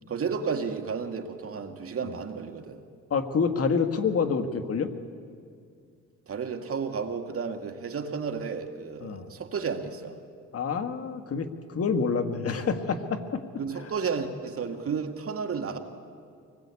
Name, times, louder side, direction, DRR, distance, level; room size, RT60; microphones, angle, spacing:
voice 1, 0.1-2.8 6.3-10.2 13.6-15.8, right 5 dB, 50° right, 5 dB, 2.2 m, -32 dB
voice 2, 3.1-4.9 9.0-9.2 10.5-13.4 13.8-13.9, left 5 dB, 50° left, 7 dB, 2.0 m, -27 dB
25.0 x 20.0 x 8.5 m, 2.3 s
cardioid pair, 90°, 30 cm